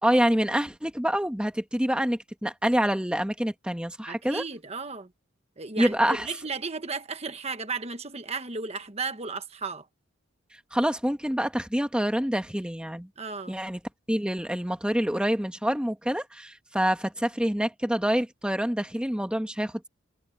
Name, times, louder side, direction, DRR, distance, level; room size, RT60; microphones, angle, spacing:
voice 1, 0.0-4.4 5.8-6.3 10.7-13.1 13.5-13.8 14.1-19.9, equal, 5° right, 1.4 m, -26 dB
voice 2, 4.1-5.1 5.6-9.9 13.2-13.6, right 4 dB, 30° right, 1.3 m, -34 dB
head